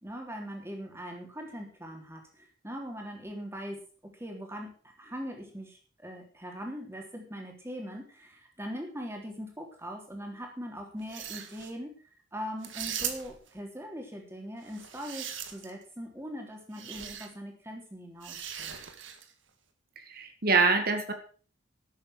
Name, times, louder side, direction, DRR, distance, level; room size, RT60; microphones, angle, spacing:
voice 1, 0.0-3.8 4.2-4.7 5.0-11.9 12.3-18.7, equal, 15° right, 1 dB, 3.4 m, -41 dB
sound 1, 11.0-11.7 12.6-13.5 14.7-15.8 16.7-17.3 18.2-19.3, right 9 dB, 75° right, 1.8 m, -39 dB
voice 2, 20.1-21.1, right 4 dB, 50° right, 7 dB, 1.8 m, -25 dB
12.5 x 8.6 x 6.4 m, 0.40 s
head